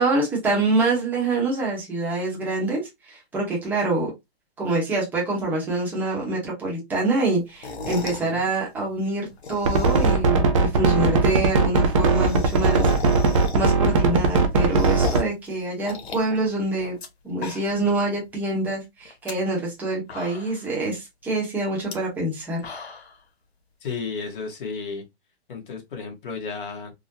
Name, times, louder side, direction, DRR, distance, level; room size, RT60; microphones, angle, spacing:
voice 1, 0.0-4.1 4.6-12.9 13.5-17.0 17.2-22.6, right 2 dB, 5° right, 0.8 m, -25 dB
sound 1, 7.5-8.3 9.3-10.4 10.7-10.8 11.0-11.1 11.3-11.4 11.7-13.9 14.3-15.4 15.8-17.1 17.3-17.9 18.3-18.4 19.0-19.3 19.8-19.9 20.1-20.7 21.8-21.9 22.4-23.2, left 4 dB, 90° left, 1.1 m, -37 dB
voice 2, 7.8-8.5 23.8-25.0 25.5-26.9, left 5 dB, 55° left, 1.3 m, -33 dB
sound 2, 9.7-15.2, right 4 dB, 30° right, 0.5 m, -19 dB
3.7 x 2.1 x 2.6 m
hypercardioid pair, 155°, 31 cm